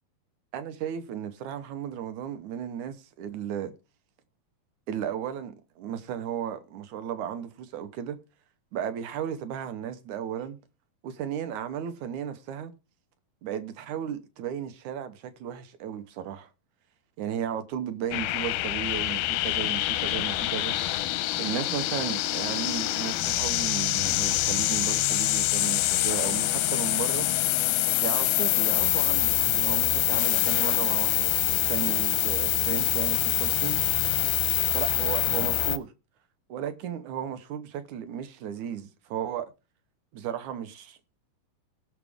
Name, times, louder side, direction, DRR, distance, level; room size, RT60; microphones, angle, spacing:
voice 1, 0.5-3.8 4.9-8.2 8.7-10.6 11.0-12.7 13.4-16.5 17.2-20.8 21.4-27.3 28.0-33.9 34.7-35.9 36.5-39.5 40.1-41.0, right 9 dB, 70° right, 1.9 m, -35 dB
sound 1, 18.1-35.8, left 16 dB, 85° left, 2.6 m, -25 dB
17.5 x 6.5 x 3.6 m
omnidirectional pair, 4.3 m